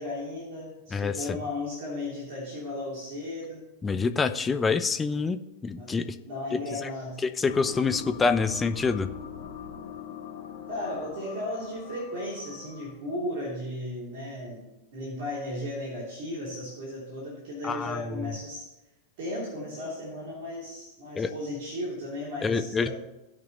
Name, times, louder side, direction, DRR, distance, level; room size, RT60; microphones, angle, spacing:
voice 1, 0.0-3.7 5.8-6.0 6.2-7.5 10.7-14.7 14.9-18.7 19.2-22.9, left 1 dB, 50° right, -5 dB, 3.2 m, -35 dB
voice 2, 0.9-1.4 3.8-6.2 6.5-6.9 7.2-9.1 17.6-18.2 21.2-21.3 22.4-22.9, left 4 dB, 15° left, 10 dB, 0.6 m, -27 dB
sound 1, 7.5-13.1, left 7 dB, 60° left, 1.8 m, -42 dB
18.0 x 6.1 x 3.1 m, 0.95 s
figure-of-eight pair, 90°, 0 cm